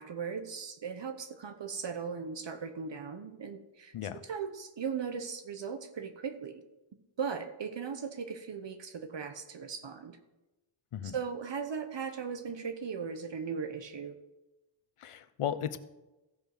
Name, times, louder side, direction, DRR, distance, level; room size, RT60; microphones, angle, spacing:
voice 1, 0.0-6.6 7.2-10.2 11.0-14.2, right 6 dB, 60° right, 8 dB, 1.1 m, -38 dB
voice 2, 15.0-15.8, left 9 dB, 85° left, 13 dB, 0.8 m, -35 dB
15.0 x 5.3 x 6.1 m, 1.0 s
wide cardioid pair, 90°, 50 cm